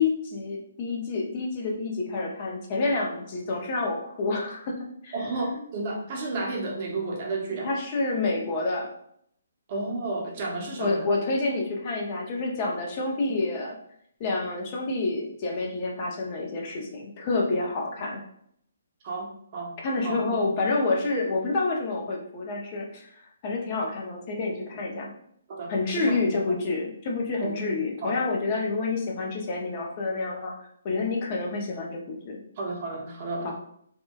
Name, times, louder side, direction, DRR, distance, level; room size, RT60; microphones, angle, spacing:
voice 1, 0.0-4.8 5.0-5.1 5.5-5.6 7.6-8.9 10.8-13.8 14.2-18.2 19.8-23.1 23.4-25.1 25.7-30.6 30.8-32.4 33.4-33.5, left 3 dB, 35° left, -1 dB, 0.5 m, -28 dB
voice 2, 5.1-7.7 9.7-11.1 19.0-19.7 20.0-20.5 25.5-26.8 27.4-27.7 28.0-28.2 32.6-33.5, right 2 dB, 40° right, -1 dB, 0.7 m, -32 dB
2.9 x 2.2 x 2.2 m, 0.68 s
hypercardioid pair, 155°, 0 cm